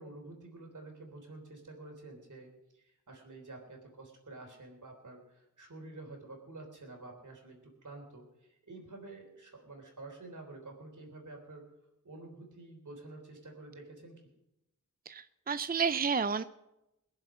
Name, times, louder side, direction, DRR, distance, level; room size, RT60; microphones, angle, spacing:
voice 1, 0.0-11.6 12.0-14.3, right 2 dB, 70° right, 2 dB, 3.6 m, -49 dB
voice 2, 15.1-16.4, right 5 dB, 30° right, 12 dB, 0.5 m, -31 dB
21.0 x 7.3 x 6.2 m, 0.89 s
wide cardioid pair, 55°, 31 cm